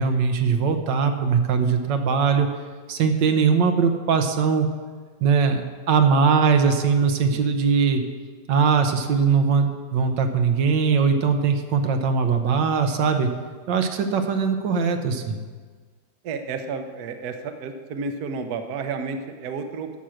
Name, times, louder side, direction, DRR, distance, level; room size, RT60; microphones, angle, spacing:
voice 1, 0.0-2.5 2.9-4.7 5.2-8.0 8.5-13.3 13.7-15.4, right 5 dB, 80° right, 6 dB, 1.6 m, -21 dB
voice 2, 16.2-19.9, right 4 dB, 65° right, 7 dB, 1.2 m, -31 dB
11.5 x 7.5 x 6.4 m, 1.5 s
omnidirectional pair, 1.9 m